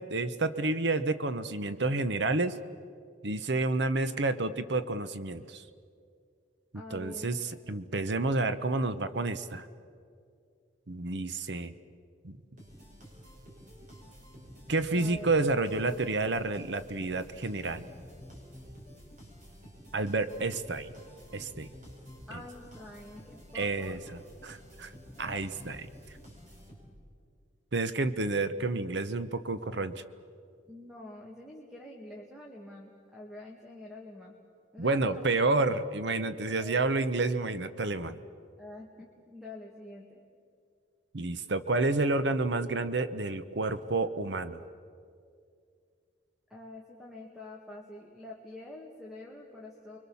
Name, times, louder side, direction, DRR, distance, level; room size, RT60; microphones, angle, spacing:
voice 1, 0.0-2.6 3.2-5.6 6.9-7.4 7.7-9.7 10.9-11.7 12.2-12.4 14.7-17.8 19.9-20.9 21.3-21.7 23.5-24.0 24.4-24.9 25.2-25.9 27.7-30.0 34.8-38.2 41.1-44.6, right 3 dB, 65° right, 11 dB, 0.9 m, -29 dB
voice 2, 6.7-7.3 14.9-15.3 20.4-20.5 22.3-24.0 30.7-34.4 34.7-35.2 36.2-36.7 38.6-40.2 46.5-50.0, left 1 dB, ahead, -1 dB, 2.0 m, -46 dB
sound 1, 12.6-27.1, equal, 40° right, 5.6 m, -50 dB
30.0 x 23.5 x 7.1 m, 2.3 s
head